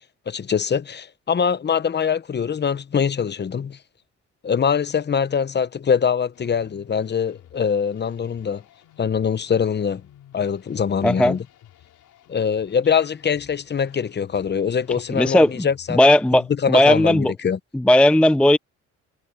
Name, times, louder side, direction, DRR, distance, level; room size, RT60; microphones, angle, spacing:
voice 1, 0.3-3.8 4.4-8.6 9.0-10.0 10.3-11.4 12.3-16.0 16.6-17.6, left 7 dB, 35° left, 0.9 m, -23 dB
sound 1, 6.3-16.3, left 11 dB, 80° left, 5.2 m, -52 dB
voice 2, 11.0-11.4 15.1-17.3 17.7-18.6, left 1 dB, 5° left, 0.4 m, -16 dB
cardioid pair, 90°, 30 cm